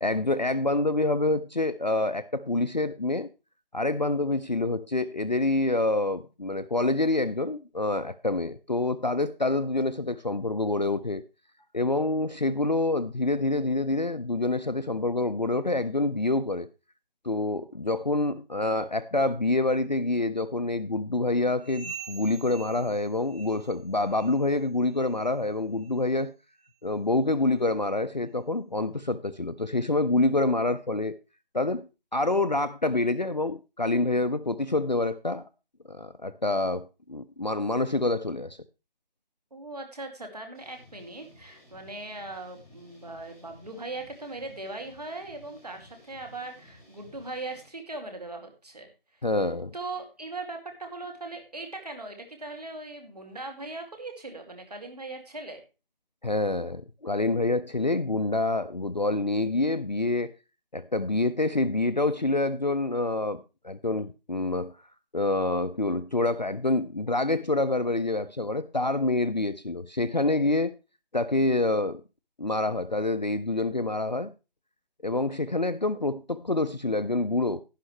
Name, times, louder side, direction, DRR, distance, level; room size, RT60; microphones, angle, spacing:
voice 1, 0.0-3.3 3.7-11.2 11.7-16.7 17.2-26.3 26.8-31.1 31.5-35.4 35.9-38.6 49.2-49.7 56.2-60.3 60.7-64.7 65.1-70.7 71.1-72.0 72.4-74.3 75.0-77.6, left 2 dB, 50° left, 12 dB, 0.5 m, -27 dB
sound 1, 21.6-23.8 24.1-24.5 24.9-25.2 25.8-25.9 26.6-26.7 27.5-27.6, right 6 dB, 20° left, 2.9 m, -44 dB
voice 2, 39.5-48.9 49.7-55.6, right 2 dB, 45° right, 4 dB, 2.4 m, -39 dB
sound 2, 40.5-47.7, left 1 dB, 5° left, 2.9 m, -55 dB
11.5 x 10.5 x 3.1 m, 0.29 s
figure-of-eight pair, 170°, 29 cm